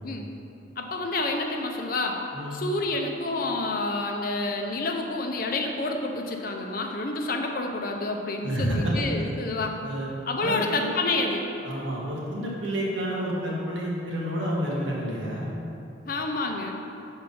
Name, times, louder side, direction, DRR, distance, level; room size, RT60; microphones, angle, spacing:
voice 1, 0.8-2.2 2.5-9.8 10.3-11.4 16.1-16.7, left 2 dB, 45° left, 2 dB, 0.6 m, -28 dB
voice 2, 2.3-2.6 8.4-8.9 9.8-10.1 10.4-10.9 11.6-15.5, equal, 75° right, -4 dB, 1.3 m, -29 dB
5.4 x 4.4 x 5.3 m, 2.7 s
head